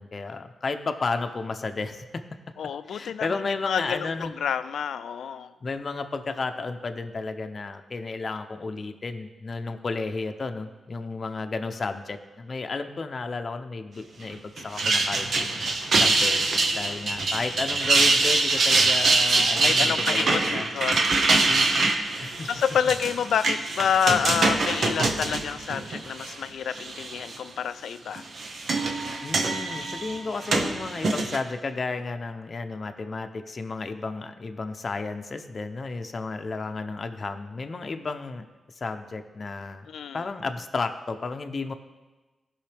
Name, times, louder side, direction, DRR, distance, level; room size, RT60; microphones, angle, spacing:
voice 1, 0.0-2.2 2.9-4.3 5.6-20.7 21.5-21.9 22.2-22.5 29.2-38.4 38.8-41.7, left 3 dB, 45° left, 6 dB, 0.7 m, -33 dB
voice 2, 2.6-3.3 3.6-5.5 16.3-16.9 19.6-21.7 22.0-28.2 39.9-40.2, left 8 dB, 85° left, 13 dB, 0.4 m, -29 dB
sound 1, 14.6-26.3 26.7-27.3 28.2-31.4, right 3 dB, 65° right, 0.9 m, -24 dB
16.0 x 5.5 x 3.4 m, 1.2 s
cardioid pair, 90°, 0 cm